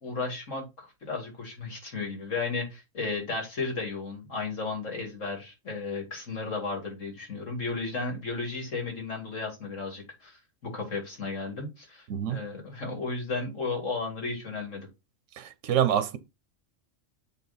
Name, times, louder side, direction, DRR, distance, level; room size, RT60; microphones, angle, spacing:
voice 1, 0.0-14.9, left 3 dB, 85° left, 2.9 m, -34 dB
voice 2, 12.1-12.4 15.4-16.2, right 10 dB, 75° right, 1.1 m, -26 dB
8.7 x 3.7 x 4.2 m
omnidirectional pair, 1.3 m